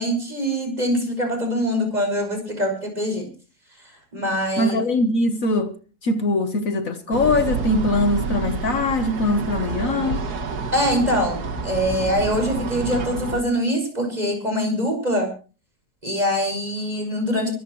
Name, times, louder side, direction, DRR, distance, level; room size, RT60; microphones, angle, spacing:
voice 1, 0.0-3.3 4.1-4.8 10.7-15.3 16.0-17.5, equal, 25° right, 6.1 m, -23 dB
voice 2, 4.6-10.2, left 2 dB, 60° left, 1.5 m, -22 dB
sound 1, 7.1-13.4, right 4 dB, 80° right, 2.1 m, -28 dB
23.5 x 14.0 x 3.1 m
omnidirectional pair, 1.7 m